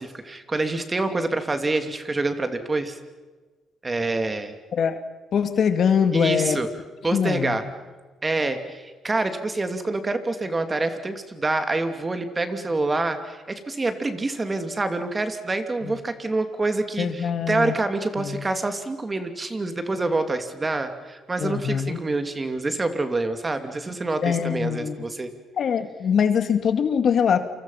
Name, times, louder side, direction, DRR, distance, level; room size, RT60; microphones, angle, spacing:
voice 1, 0.0-3.0 3.8-4.5 6.1-6.7 7.0-7.6 8.2-25.3, right 2 dB, 25° right, 7 dB, 2.7 m, -26 dB
voice 2, 5.3-6.6 7.1-7.6 15.8-16.0 17.0-17.7 18.2-18.4 21.4-22.0 24.2-25.1 25.6-27.4, left 7 dB, 60° left, 8 dB, 2.1 m, -23 dB
28.5 x 25.5 x 5.8 m, 1.3 s
cardioid pair, 90°, 0 cm